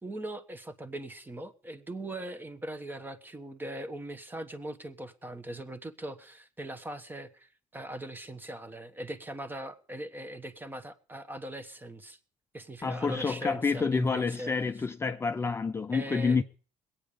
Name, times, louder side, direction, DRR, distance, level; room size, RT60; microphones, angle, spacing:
voice 1, 0.0-12.2 12.5-14.8 15.9-16.4, right 1 dB, 15° right, 1.2 m, -40 dB
voice 2, 12.8-16.4, left 4 dB, 20° left, 0.6 m, -28 dB
21.0 x 8.8 x 5.1 m
cardioid pair, 100°, 13 cm